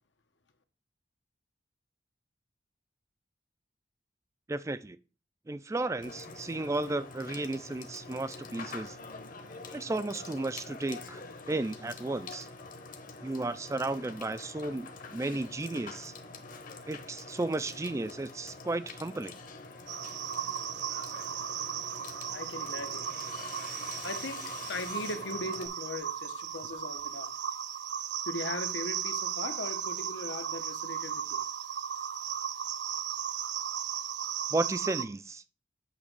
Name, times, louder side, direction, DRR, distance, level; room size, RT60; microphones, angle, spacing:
voice 1, 4.5-5.0 5.5-9.0 9.7-11.2 11.5-12.5 13.2-16.1 16.9-19.4 34.5-35.4, right 2 dB, 15° right, 0.3 m, -34 dB
Water / Water tap faucet / Sink (filling or washing), 6.0-25.7, left 3 dB, 45° left, 1.0 m, -46 dB
sound 1, 19.9-35.1, right 9 dB, 65° right, 0.5 m, -36 dB
voice 2, 22.3-23.1 24.0-27.3 28.2-31.4, left 2 dB, 80° left, 1.0 m, -39 dB
8.5 x 3.0 x 6.0 m
head